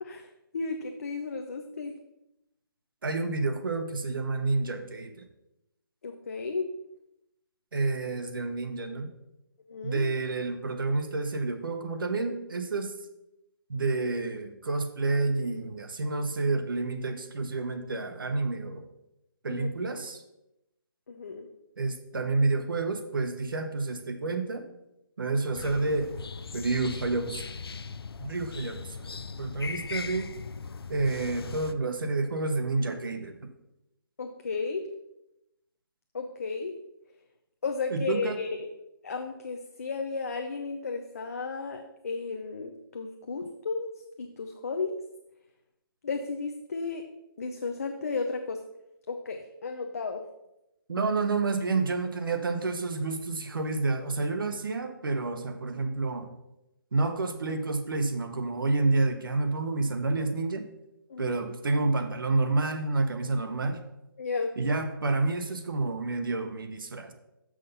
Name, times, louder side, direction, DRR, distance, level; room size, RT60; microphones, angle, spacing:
voice 1, 0.0-1.9 6.0-6.7 9.7-10.0 19.5-19.7 21.1-21.5 34.2-34.9 36.1-36.7 37.6-38.7 39.0-45.0 46.0-47.0 47.4-48.6 49.1-50.2 61.1-61.4 64.2-64.5, left 4 dB, 40° left, 5 dB, 0.6 m, -34 dB
voice 2, 3.0-5.2 7.7-9.1 9.8-12.9 13.7-18.8 19.4-20.2 21.8-24.7 25.2-26.1 26.5-27.5 28.2-30.3 30.9-33.5 37.9-38.4 50.9-56.3 56.9-60.7 61.2-63.8 64.6-67.1, right 3 dB, 65° right, 7 dB, 1.0 m, -29 dB
sound 1, 25.5-31.7, left 5 dB, 90° left, 0.5 m, -39 dB
6.8 x 6.3 x 5.4 m, 0.88 s
hypercardioid pair, 175°, 12 cm